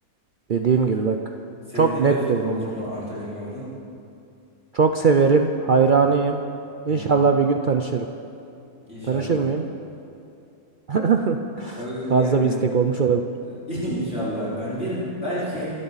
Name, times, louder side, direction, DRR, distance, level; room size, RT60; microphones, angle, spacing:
voice 1, 0.5-1.2 1.7-2.7 4.7-6.4 6.9-8.1 9.1-9.6 10.9-11.8 12.1-13.2, right 5 dB, 80° right, 4 dB, 0.4 m, -20 dB
voice 2, 1.7-3.7 6.9-7.2 8.9-9.4 11.8-12.5 13.7-15.7, equal, 40° left, -10 dB, 4.6 m, -30 dB
27.0 x 11.5 x 4.1 m, 2.6 s
omnidirectional pair, 1.7 m